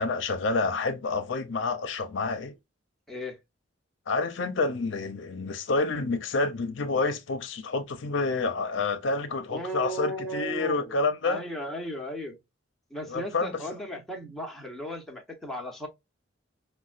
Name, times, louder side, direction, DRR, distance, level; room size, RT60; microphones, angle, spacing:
voice 1, 0.0-2.5 4.1-11.4 13.1-13.6, left 3 dB, 70° left, 0.6 m, -28 dB
voice 2, 3.1-3.4 9.5-11.0 11.2-12.4 12.9-15.9, equal, ahead, 0.8 m, -36 dB
5.2 x 2.1 x 2.4 m
head